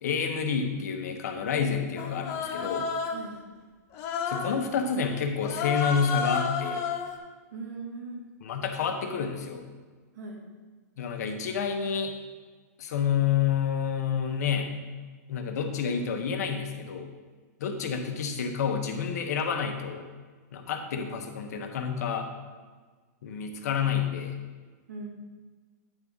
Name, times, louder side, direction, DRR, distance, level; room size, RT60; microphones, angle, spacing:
voice 1, 0.0-2.9 4.3-6.8 8.4-9.6 11.0-12.1 12.8-14.8 15.3-17.1 17.6-20.1 20.5-22.3 23.2-24.4, left 7 dB, 65° left, 4 dB, 1.1 m, -29 dB
Human voice, 2.0-3.3 3.9-4.6 5.4-7.2, left 5 dB, 30° left, 0.7 m, -31 dB
voice 2, 7.5-8.2 10.1-10.4 24.9-25.1, right 3 dB, 75° right, -1 dB, 2.1 m, -39 dB
9.2 x 3.6 x 5.5 m, 1.4 s
hypercardioid pair, 145°, 9 cm